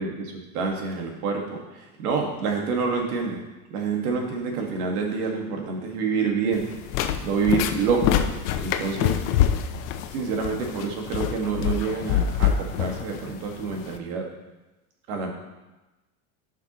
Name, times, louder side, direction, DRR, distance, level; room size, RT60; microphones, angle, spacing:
voice 1, 0.0-3.4 3.7-6.7 7.2-8.2 8.6-9.2 10.1-14.2 15.1-15.3, right 5 dB, 85° right, 1 dB, 1.9 m, -27 dB
sound 1, 6.5-14.0, left 9 dB, 65° left, 0.7 m, -26 dB
12.0 x 5.9 x 3.0 m, 1.1 s
supercardioid pair, 150°, 44 cm